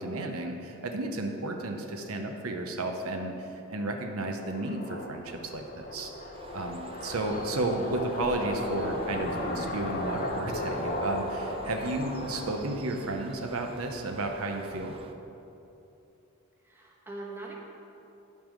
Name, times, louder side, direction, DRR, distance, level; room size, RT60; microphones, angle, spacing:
voice 1, 0.0-6.1 6.5-14.9, right 2 dB, 75° right, 4 dB, 0.8 m, -33 dB
sound 1, 4.3-12.6, left 1 dB, 35° left, 0.8 m, -35 dB
Bird, 6.3-15.1, right 3 dB, 25° right, 0.4 m, -49 dB
voice 2, 11.5-12.1 16.6-17.5, right 2 dB, 10° right, -3 dB, 1.2 m, -43 dB
12.0 x 5.5 x 5.1 m, 2.9 s
head